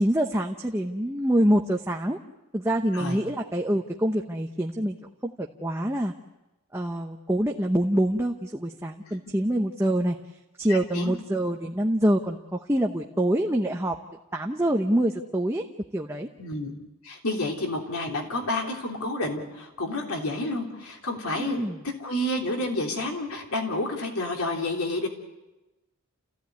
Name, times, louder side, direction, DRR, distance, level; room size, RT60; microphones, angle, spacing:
voice 1, 0.0-2.2 2.5-5.0 5.2-6.1 6.7-10.2 10.6-13.9 14.3-15.6 15.9-16.3 21.3-21.8, right 1 dB, 10° right, 2 dB, 0.9 m, -25 dB
voice 2, 10.7-11.1 16.4-16.7 17.0-21.7 22.0-25.1, left 1 dB, 80° left, 2 dB, 3.3 m, -30 dB
29.5 x 16.0 x 9.5 m, 1.0 s
head